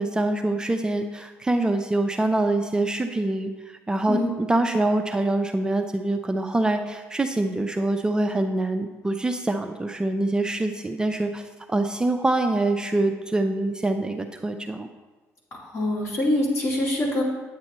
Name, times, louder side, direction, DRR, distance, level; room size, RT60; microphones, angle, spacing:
voice 1, 0.0-11.4 11.7-14.9, right 2 dB, 15° right, 5 dB, 0.5 m, -25 dB
voice 2, 15.5-17.2, left 1 dB, 50° left, -4 dB, 2.6 m, -24 dB
8.7 x 8.4 x 3.0 m, 1.2 s
cardioid pair, 90°, 6 cm